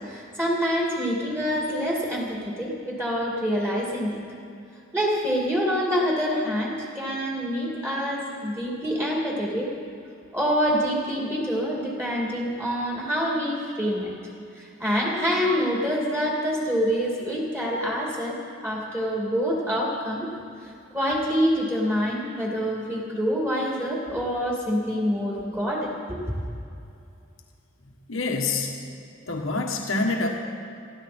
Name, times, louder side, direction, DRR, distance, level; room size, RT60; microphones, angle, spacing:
voice 1, 0.0-4.2 4.9-9.7 10.3-14.1 14.5-20.3 20.6-26.4, equal, 10° right, -3 dB, 2.5 m, -26 dB
voice 2, 28.1-28.8 29.3-30.3, left 3 dB, 85° left, 1 dB, 1.6 m, -26 dB
19.5 x 14.0 x 4.4 m, 2.5 s
head